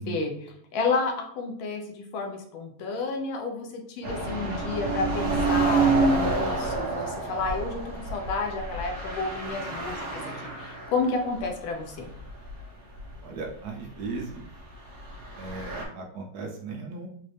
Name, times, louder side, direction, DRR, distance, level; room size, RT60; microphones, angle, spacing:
voice 1, 0.0-12.1, left 3 dB, 85° left, 3 dB, 1.5 m, -31 dB
sound 1, 4.0-11.1 11.4-11.5 12.1-12.6 13.0-13.1 15.1-15.8, right 3 dB, 45° right, 0.8 m, -28 dB
voice 2, 13.2-14.5 15.4-17.1, right 4 dB, 65° right, 0 dB, 1.0 m, -37 dB
4.2 x 2.5 x 3.2 m, 0.64 s
omnidirectional pair, 2.1 m